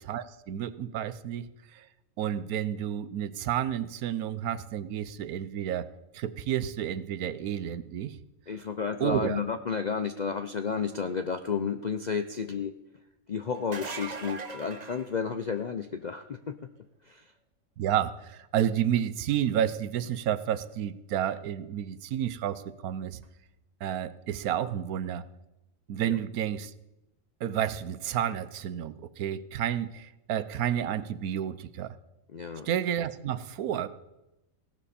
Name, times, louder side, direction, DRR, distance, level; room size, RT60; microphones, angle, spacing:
voice 1, 0.1-1.8 2.2-5.9 6.1-8.2 9.0-9.4 17.8-23.2 23.8-25.2 25.9-26.7 27.4-32.0 32.6-33.9, right 10 dB, 90° right, 15 dB, 1.2 m, -30 dB
voice 2, 8.5-12.7 13.3-16.5 17.0-17.3 26.0-26.2 32.3-32.7, left 6 dB, 60° left, 8 dB, 0.4 m, -32 dB
sound 1, 13.6-15.8 21.3-21.4 23.2-23.3, right 4 dB, 35° right, 0.9 m, -40 dB
17.0 x 12.0 x 4.3 m, 0.94 s
omnidirectional pair, 1.5 m